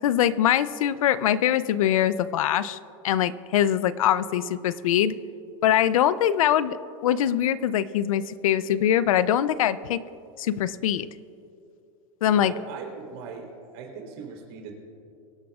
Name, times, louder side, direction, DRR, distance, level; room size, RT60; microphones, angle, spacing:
voice 1, 0.0-2.8 3.0-5.2 5.6-6.8 7.0-10.0 10.4-11.1 12.2-12.5, left 10 dB, 85° left, 16 dB, 0.5 m, -23 dB
voice 2, 12.3-13.5 13.7-14.7, right 6 dB, 50° right, 0 dB, 3.6 m, -39 dB
24.0 x 11.0 x 2.4 m, 2.6 s
supercardioid pair, 160°, 17 cm